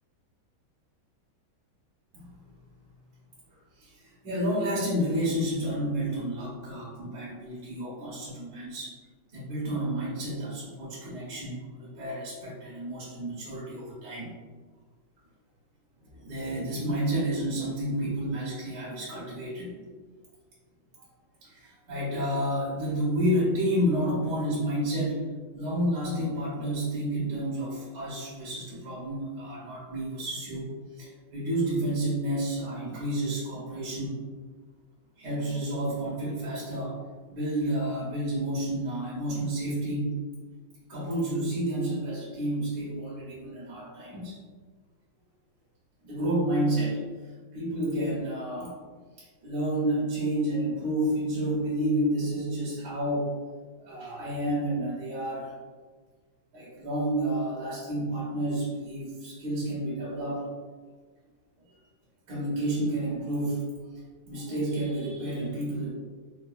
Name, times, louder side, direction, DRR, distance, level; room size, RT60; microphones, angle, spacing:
voice 1, 2.1-2.4 3.8-8.9 9.3-14.3 16.1-19.8 21.4-25.3 25.5-30.7 31.0-34.2 35.2-37.0 37.3-40.1 40.9-44.4 46.0-47.0 47.5-48.7 49.2-53.4 53.8-55.5 56.5-60.5 62.3-63.7 64.3-65.9, right 1 dB, 60° right, -7 dB, 1.2 m, -30 dB
4.6 x 2.2 x 2.3 m, 1.5 s
omnidirectional pair, 2.2 m